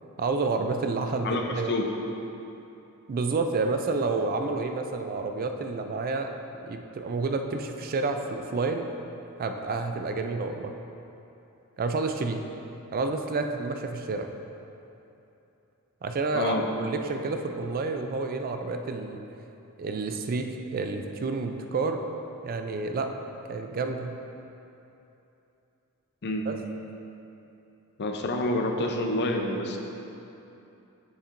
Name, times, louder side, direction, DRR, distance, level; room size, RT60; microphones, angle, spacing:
voice 1, 0.2-1.7 3.1-6.3 6.6-8.9 9.4-10.8 11.8-12.4 12.9-14.3 16.0-16.5 16.8-19.2 19.8-22.0 22.4-23.1 23.5-24.2 26.5-26.6, right 3 dB, 40° right, 5 dB, 0.4 m, -29 dB
voice 2, 1.2-1.9 16.3-16.7 26.2-26.5 28.0-29.8, left 1 dB, 50° left, 3 dB, 0.6 m, -28 dB
7.2 x 7.2 x 2.6 m, 2.9 s
head